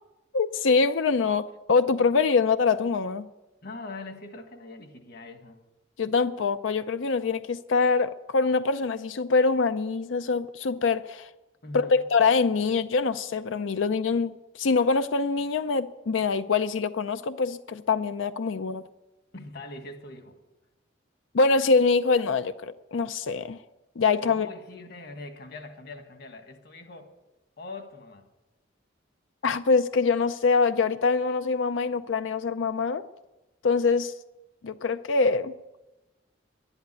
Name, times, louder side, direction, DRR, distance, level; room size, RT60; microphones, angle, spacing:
voice 1, 0.3-3.3 6.0-11.3 11.7-18.8 21.3-23.6 24.0-24.5 29.4-33.0 33.6-34.1 34.6-35.5, left 4 dB, 85° left, 0.5 m, -24 dB
voice 2, 3.6-5.6 11.6-12.0 19.3-20.4 24.3-27.1 27.6-28.2, left 2 dB, 55° left, 1.6 m, -42 dB
11.5 x 10.5 x 9.5 m
head